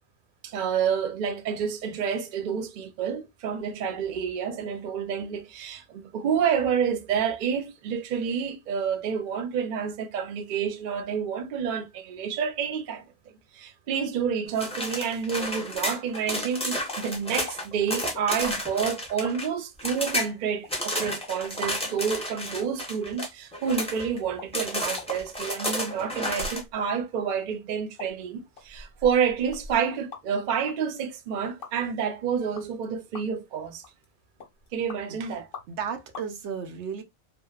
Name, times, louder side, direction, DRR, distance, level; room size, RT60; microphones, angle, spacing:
voice 1, 0.4-13.0 13.5-33.8 34.7-35.5, right 7 dB, 60° right, 0.6 m, -29 dB
sound 1, 14.6-19.5 19.8-20.3 20.7-24.2 24.5-26.6, left 1 dB, 5° left, 0.5 m, -31 dB
sound 2, 16.9-17.1 17.5-17.6 18.1-18.8 19.2-19.4 19.9-20.0 20.6-20.7 21.2-21.3 21.8-21.9 22.2-22.3 22.6-22.7 23.2-23.3 23.7-23.8 24.2-24.5 24.8-25.7 26.3-26.9 27.3-27.4 28.0-28.1 28.6-30.4 30.7-30.8 31.6-31.7 32.6-32.8 33.1-33.5 33.8-34.1 34.4-35.0 35.5-35.8 36.1-36.3, left 3 dB, 55° left, 0.9 m, -42 dB
voice 2, 35.7-37.0, right 6 dB, 80° right, 0.9 m, -34 dB
2.7 x 2.1 x 2.3 m
omnidirectional pair, 1.2 m